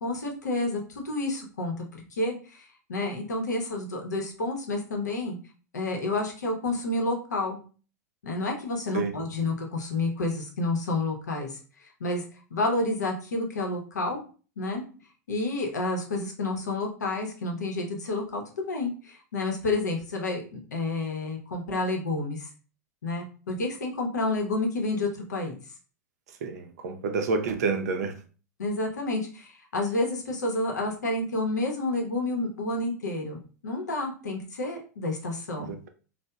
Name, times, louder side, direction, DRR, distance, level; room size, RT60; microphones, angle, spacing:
voice 1, 0.0-5.4 5.7-7.6 8.2-12.2 12.5-14.2 14.6-14.8 15.3-22.5 23.0-25.6 28.6-35.7, left 2 dB, 85° left, 0.7 m, -30 dB
voice 2, 26.4-28.1 35.6-35.9, right 4 dB, 70° right, 0.4 m, -29 dB
2.8 x 2.0 x 2.2 m
hypercardioid pair, 100°, 9 cm